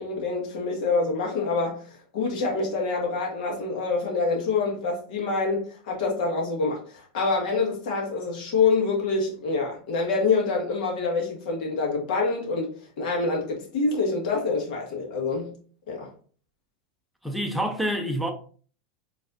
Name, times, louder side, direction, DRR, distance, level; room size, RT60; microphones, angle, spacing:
voice 1, 0.0-15.5 15.9-16.1, left 4 dB, 65° left, 1.7 m, -26 dB
voice 2, 17.2-18.3, equal, ahead, 0.6 m, -27 dB
5.2 x 3.2 x 2.5 m
supercardioid pair, 160°, 5 cm